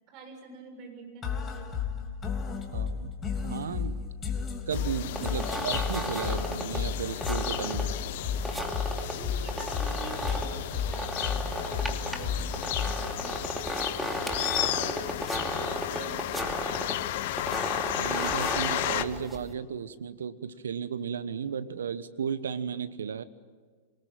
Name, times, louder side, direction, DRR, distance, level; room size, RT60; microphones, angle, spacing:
voice 1, 0.1-2.0 5.3-5.8 8.9-11.2 11.6-13.5 14.2-15.1 15.8-17.1, right 4 dB, 45° right, 4 dB, 6.8 m, -46 dB
sound 1, 1.2-13.2, left 6 dB, 25° left, 3.1 m, -33 dB
voice 2, 2.7-3.1 3.4-4.0 4.7-7.9 18.0-23.2, right 7 dB, 75° right, 15 dB, 1.1 m, -34 dB
sound 2, 4.7-19.0, left 14 dB, 60° left, 0.9 m, -34 dB
sound 3, 5.1-19.5, equal, 5° right, 2.8 m, -35 dB
23.5 x 20.0 x 9.0 m, 1.5 s
figure-of-eight pair, 95°, 0 cm